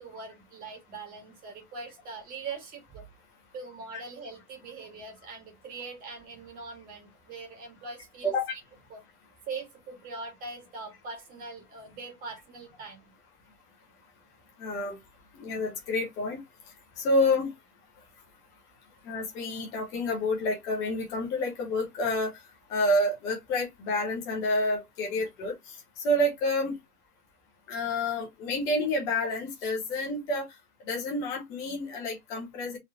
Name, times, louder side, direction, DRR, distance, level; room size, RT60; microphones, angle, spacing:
voice 1, 0.0-3.1 3.5-8.6 8.9-9.0 9.5-13.1, right 4 dB, 20° right, 1.6 m, -42 dB
voice 2, 14.6-15.0 15.3-16.4 17.0-17.5 19.0-22.4 22.7-26.8 27.7-30.5 30.9-32.8, left 1 dB, 5° left, 0.5 m, -29 dB
4.0 x 2.9 x 2.7 m
hypercardioid pair, 140°, 47 cm